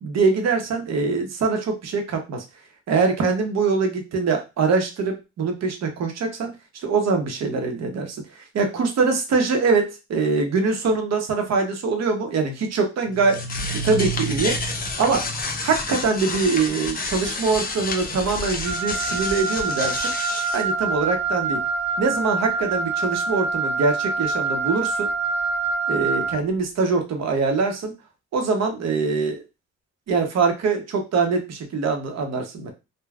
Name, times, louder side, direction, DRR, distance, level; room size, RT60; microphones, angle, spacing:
voice 1, 0.0-2.4 2.9-6.5 6.8-13.4 13.8-14.6 15.0-15.3 15.6-20.1 20.5-21.6 22.0-25.1 25.9-27.9 28.3-29.4 30.1-32.7, right 4 dB, 60° right, 4 dB, 0.9 m, -23 dB
sound 1, 13.1-20.6, left 2 dB, 30° left, 0.6 m, -29 dB
Wind instrument woodwind instrument, 18.6-26.4, right 4 dB, 5° left, 0.9 m, -26 dB
3.4 x 2.2 x 2.3 m, 0.26 s
cardioid pair, 90°, 30 cm